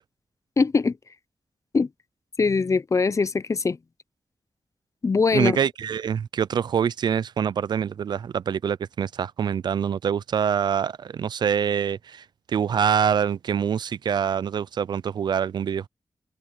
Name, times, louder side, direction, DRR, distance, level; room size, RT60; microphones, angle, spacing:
voice 1, 0.6-1.0 1.7-1.9 2.4-3.8 5.0-5.6, left 4 dB, 45° left, 0.6 m, -22 dB
voice 2, 5.3-15.9, right 8 dB, 80° right, 0.4 m, -25 dB
cardioid pair, 55°, 7 cm